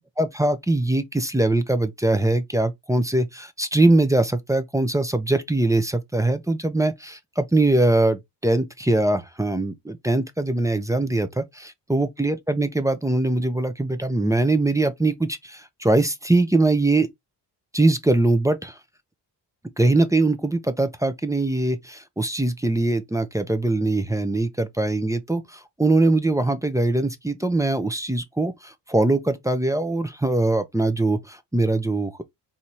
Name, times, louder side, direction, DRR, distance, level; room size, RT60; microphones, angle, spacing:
voice 1, 0.2-17.1 17.7-18.8 19.8-32.2, right 2 dB, 5° right, 0.6 m, -22 dB
4.1 x 2.8 x 3.0 m
cardioid pair, 80°, 44 cm